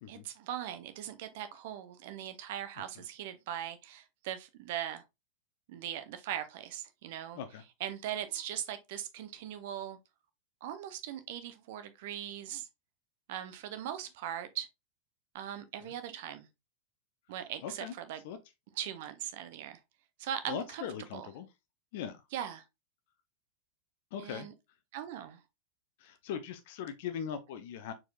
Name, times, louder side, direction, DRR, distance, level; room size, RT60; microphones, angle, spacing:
voice 1, 0.1-5.0 5.7-7.4 7.8-10.0 10.6-12.7 13.3-14.7 15.3-16.5 17.3-18.2 18.8-19.8 20.2-20.8 21.1-21.3 22.3-22.6 24.2-24.5 24.9-25.4, right 10 dB, 50° right, 0.8 m, -40 dB
voice 2, 17.6-17.9 18.2-18.4 20.5-21.5 21.9-22.2 24.1-24.5 26.0-27.9, left 8 dB, 50° left, 0.6 m, -40 dB
4.5 x 4.3 x 2.3 m
figure-of-eight pair, 90°, 0 cm